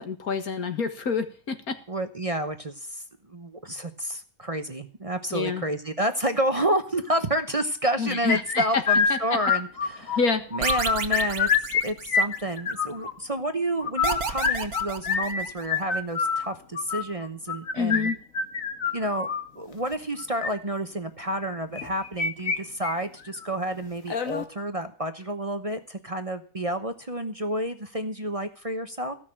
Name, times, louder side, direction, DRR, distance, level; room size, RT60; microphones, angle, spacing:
voice 1, 0.0-1.8 5.3-5.6 8.0-8.6 9.1-9.2 10.2-10.4 17.8-18.2, left 5 dB, 80° left, 8 dB, 2.1 m, -27 dB
voice 2, 1.9-10.2 10.5-18.1 18.9-19.3 19.5-29.2, right 1 dB, 30° right, 8 dB, 0.9 m, -30 dB
sound 1, 8.3-10.2 10.5-11.8 12.1-13.1 13.8-19.4 20.2-20.5 21.7-22.6 22.8-22.9 23.4-23.5 24.1-24.4, left 6 dB, 65° left, 1.8 m, -26 dB
sound 2, 10.6-12.6 14.0-15.8, right 5 dB, 80° right, 1.7 m, -31 dB
16.0 x 6.3 x 8.7 m, 0.41 s
omnidirectional pair, 1.5 m